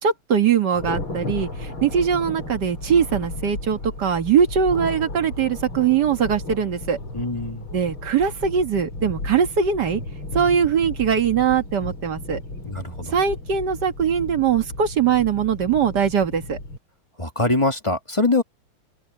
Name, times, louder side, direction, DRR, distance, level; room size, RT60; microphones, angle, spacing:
voice 1, 0.0-7.0 7.7-10.0 10.3-12.4 13.1-16.6, right 7 dB, 55° right, 2.0 m, -21 dB
Thunder, 0.7-16.8, left 2 dB, 75° left, 7.3 m, -34 dB
voice 2, 7.1-7.6 12.6-13.1 17.2-18.4, left 2 dB, 15° left, 1.8 m, -23 dB
open air
omnidirectional pair, 2.3 m